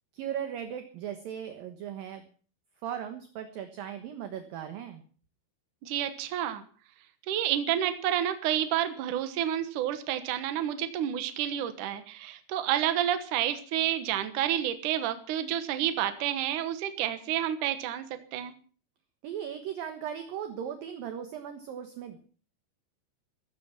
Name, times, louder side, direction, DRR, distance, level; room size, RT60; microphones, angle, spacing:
voice 1, 0.1-2.2 2.8-5.0 19.2-22.2, right 9 dB, 65° right, 7 dB, 2.4 m, -37 dB
voice 2, 5.8-6.6 7.3-18.0 18.3-18.5, right 11 dB, 85° right, 10 dB, 1.8 m, -29 dB
15.0 x 15.0 x 5.9 m, 0.42 s
omnidirectional pair, 5.7 m